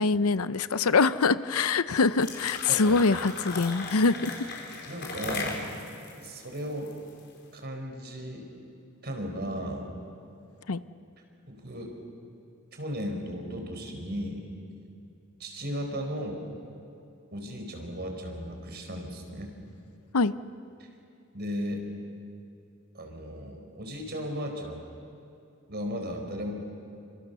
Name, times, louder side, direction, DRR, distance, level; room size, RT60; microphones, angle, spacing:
voice 1, 0.0-4.4 10.7-10.8 20.1-20.3, left 4 dB, 85° left, 14 dB, 0.7 m, -24 dB
sound 1, 2.0-7.3, left 3 dB, 55° left, 4.6 m, -37 dB
voice 2, 2.7-3.0 4.9-5.6 6.2-6.9 7.5-8.5 9.0-9.9 11.5-11.9 12.7-14.5 15.4-16.4 17.3-19.5 21.3-21.8 22.9-24.8 25.7-26.5, equal, 50° right, 3 dB, 4.5 m, -35 dB
29.0 x 26.5 x 7.0 m, 2.7 s
head